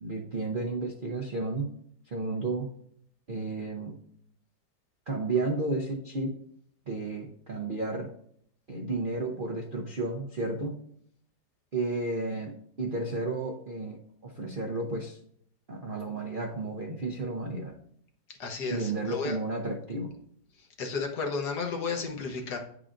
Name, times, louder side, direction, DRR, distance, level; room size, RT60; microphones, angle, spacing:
voice 1, 0.0-1.7 2.1-2.7 3.3-4.0 5.1-6.3 6.9-8.1 8.7-10.7 11.7-15.2 15.7-17.8 18.7-20.1, right 2 dB, 55° right, 1 dB, 0.6 m, -32 dB
voice 2, 18.3-19.4 20.6-22.6, left 4 dB, 65° left, 3 dB, 1.6 m, -33 dB
9.8 x 4.9 x 2.5 m, 0.65 s
omnidirectional pair, 1.9 m